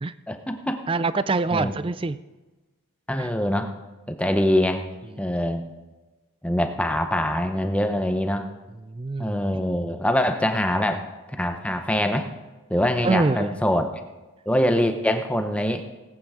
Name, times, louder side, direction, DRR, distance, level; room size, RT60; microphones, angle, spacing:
voice 1, 0.3-0.8 1.5-1.7 3.1-3.7 4.1-4.9 5.2-5.8 6.4-8.5 9.2-12.3 12.7-13.9 14.5-16.0, left 1 dB, 5° left, 6 dB, 0.8 m, -24 dB
voice 2, 0.9-2.2 3.2-3.3 5.2-5.3 8.9-9.6 13.0-13.5, right 3 dB, 25° right, 15 dB, 0.4 m, -25 dB
18.0 x 9.0 x 5.0 m, 1.2 s
head